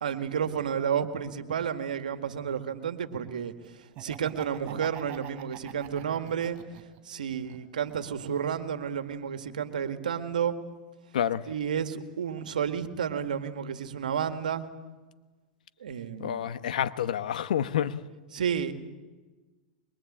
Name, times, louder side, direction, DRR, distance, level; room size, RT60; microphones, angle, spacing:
voice 1, 0.0-6.6 7.1-10.5 11.5-14.7 15.8-16.4 18.3-18.7, right 8 dB, 80° right, 9 dB, 2.0 m, -31 dB
Laughter, 3.8-7.0 7.4-8.6, right 11 dB, 45° right, 4.3 m, -44 dB
voice 2, 16.2-18.0, left 9 dB, 75° left, 12 dB, 1.2 m, -28 dB
23.5 x 23.0 x 8.8 m, 1.3 s
hypercardioid pair, 110°, 4 cm